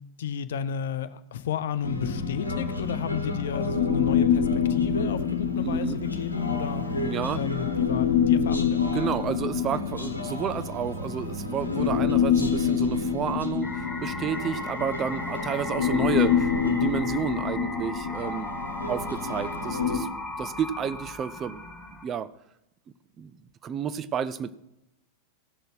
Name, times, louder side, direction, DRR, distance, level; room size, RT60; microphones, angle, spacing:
voice 1, 0.2-6.8 7.3-8.8, left 7 dB, 60° left, 13 dB, 0.6 m, -32 dB
Human voice, 1.8-20.0, left 6 dB, 80° left, 1.1 m, -27 dB
voice 2, 5.6-6.0 7.0-7.4 8.9-18.5 18.9-20.1 20.4-21.7 22.0-22.3 23.2-23.3 23.6-24.5, right 8 dB, 30° right, 14 dB, 0.5 m, -31 dB
sound 1, 13.6-22.0, left 2 dB, ahead, 1.8 m, -36 dB
16.0 x 6.6 x 4.7 m, 0.84 s
figure-of-eight pair, 90°, 0 cm